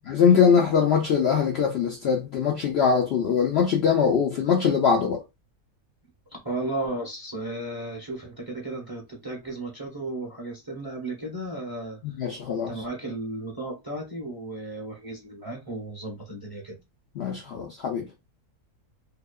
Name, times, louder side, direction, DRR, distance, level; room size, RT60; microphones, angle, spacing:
voice 1, 0.1-5.2 12.0-12.7 17.2-18.1, left 6 dB, 90° left, 0.5 m, -22 dB
voice 2, 6.3-12.3 12.5-16.8, right 2 dB, 25° right, 0.5 m, -34 dB
2.8 x 2.1 x 2.3 m
omnidirectional pair, 1.6 m